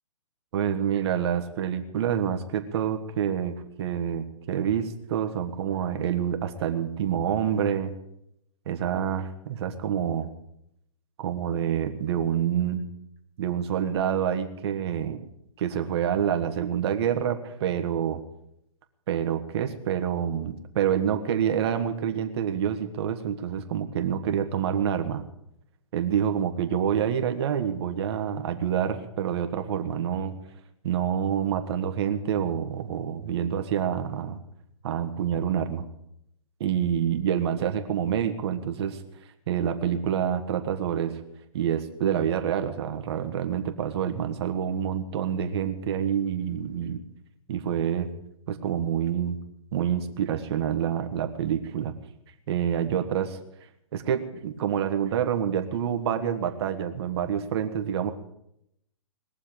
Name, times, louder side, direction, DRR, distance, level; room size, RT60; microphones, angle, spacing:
voice 1, 0.5-7.9 8.6-10.3 11.2-12.9 13.4-15.2 15.6-18.2 19.1-25.2 25.9-30.3 30.8-34.4 34.8-35.9 36.6-39.0 39.5-41.2 41.5-47.0 47.5-48.1 48.5-49.4 49.7-51.9 52.5-53.4 53.9-58.1, right 9 dB, 50° right, 7 dB, 1.8 m, -27 dB
20.5 x 7.2 x 8.6 m, 0.79 s
hypercardioid pair, 140°, 18 cm